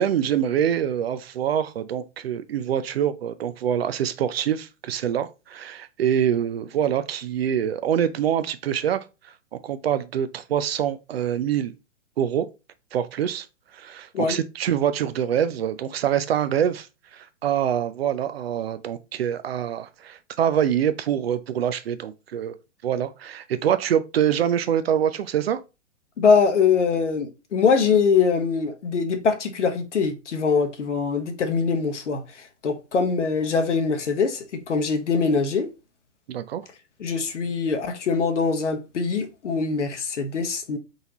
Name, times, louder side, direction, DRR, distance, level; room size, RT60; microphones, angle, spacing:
voice 1, 0.0-9.0 9.6-11.7 12.2-12.5 12.9-13.5 13.7-16.9 17.1-22.6 22.8-25.6 36.3-36.6, right 9 dB, 55° right, 0.6 m, -25 dB
voice 2, 26.2-35.7 37.0-40.8, left 5 dB, 70° left, 0.9 m, -23 dB
4.1 x 3.9 x 2.9 m
figure-of-eight pair, 115°, 37 cm